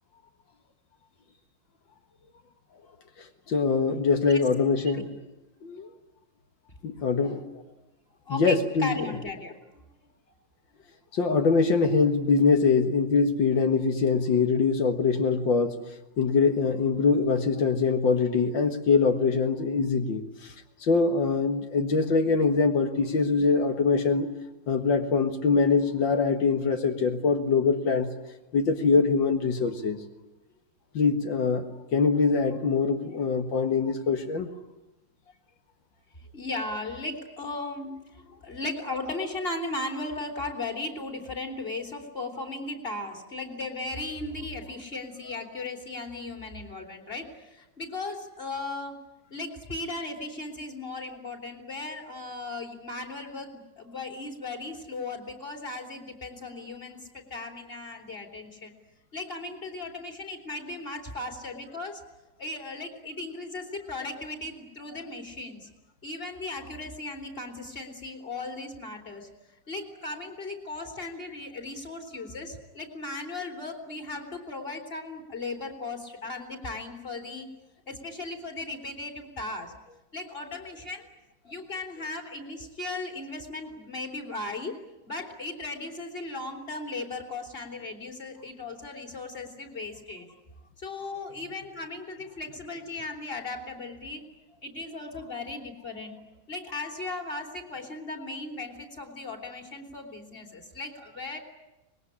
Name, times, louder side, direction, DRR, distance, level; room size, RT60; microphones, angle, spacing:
voice 1, 3.2-5.1 5.6-5.9 6.8-7.4 8.3-9.0 11.1-15.8 16.2-20.5 20.8-24.3 24.7-28.1 28.5-30.0 30.9-34.5, left 4 dB, 85° left, 5 dB, 2.3 m, -23 dB
voice 2, 8.3-9.8 36.3-49.0 49.3-58.7 59.1-62.0 62.4-65.7 66.0-69.3 69.7-77.5 77.9-79.7 80.1-81.1 81.4-84.8 85.1-90.3 90.8-94.2 94.6-96.2 96.5-101.4, left 2 dB, 30° left, 3 dB, 3.6 m, -37 dB
25.0 x 21.0 x 9.9 m, 0.98 s
omnidirectional pair, 2.0 m